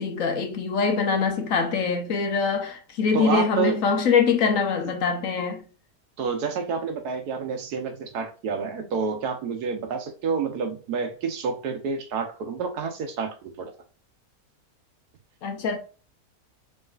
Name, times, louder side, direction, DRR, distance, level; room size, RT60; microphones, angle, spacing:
voice 1, 0.0-5.6 15.4-15.8, left 5 dB, 65° left, 1.1 m, -24 dB
voice 2, 3.1-3.8 6.2-13.7, right 5 dB, 90° right, 1.4 m, -29 dB
4.7 x 3.3 x 2.4 m
omnidirectional pair, 1.6 m